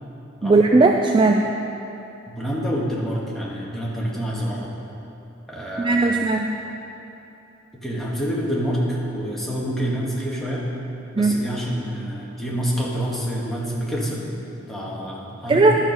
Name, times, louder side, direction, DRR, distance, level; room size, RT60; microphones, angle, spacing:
voice 1, 0.4-1.4 5.8-6.5 11.2-11.4 15.5-15.7, right 3 dB, 25° right, 2 dB, 0.3 m, -17 dB
voice 2, 2.3-4.7 5.5-6.1 7.7-10.6 11.1-14.2 14.7-15.7, equal, ahead, -6 dB, 1.6 m, -27 dB
12.0 x 6.3 x 5.3 m, 2.9 s
head